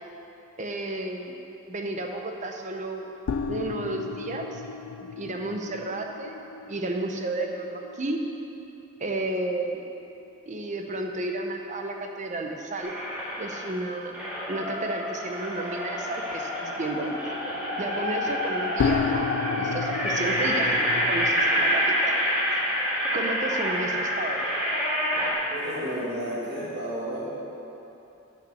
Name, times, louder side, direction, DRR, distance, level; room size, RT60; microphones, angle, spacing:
voice 1, 0.6-1.4 1.7-3.1 3.4-4.6 5.0-6.4 6.7-8.3 9.0-9.8 10.5-13.0 13.4-14.2 14.5-17.2 17.8-19.3 19.6-22.2 23.1-24.4, right 2 dB, 35° right, 3 dB, 0.7 m, -32 dB
sound 1, 3.3-9.9 10.2-10.3 10.7-10.8 18.8-21.3, left 6 dB, 85° left, 0.4 m, -33 dB
sound 2, 12.8-13.7 14.1-25.3, equal, 5° right, 2.0 m, -27 dB
voice 2, 25.5-27.3, equal, 50° right, -7 dB, 2.1 m, -32 dB
9.2 x 5.7 x 7.0 m, 2.9 s
head